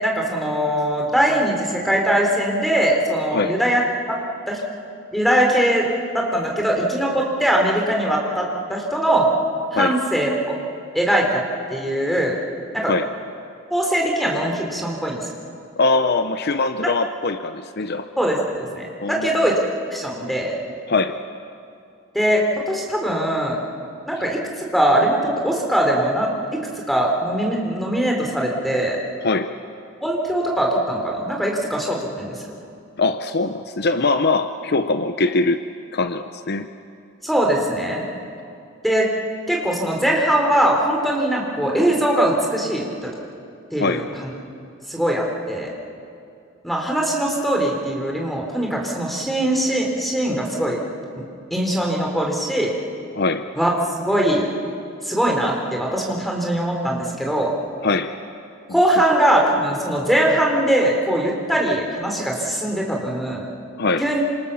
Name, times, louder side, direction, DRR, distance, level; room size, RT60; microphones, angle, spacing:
voice 1, 0.0-3.8 4.1-4.2 4.5-4.6 5.1-5.9 6.1-9.3 9.7-10.6 10.9-11.4 11.7-12.4 12.7-12.9 13.7-15.2 18.2-19.6 19.9-20.5 22.1-23.6 24.1-26.6 26.9-29.0 30.0-32.4 37.2-38.0 38.8-39.1 39.5-43.1 43.7-44.3 44.9-45.7 46.6-50.8 51.5-52.7 53.6-53.7 54.0-54.5 55.0-57.5 58.7-63.4 64.0-64.2, right 1 dB, ahead, -1 dB, 4.0 m, -21 dB
voice 2, 15.8-18.1 19.0-19.5 20.9-21.2 29.2-29.6 33.0-36.7 43.8-44.1 53.1-53.5 57.8-58.2 63.8-64.1, left 3 dB, 55° left, 9 dB, 0.8 m, -22 dB
28.0 x 27.0 x 7.1 m, 2.5 s
head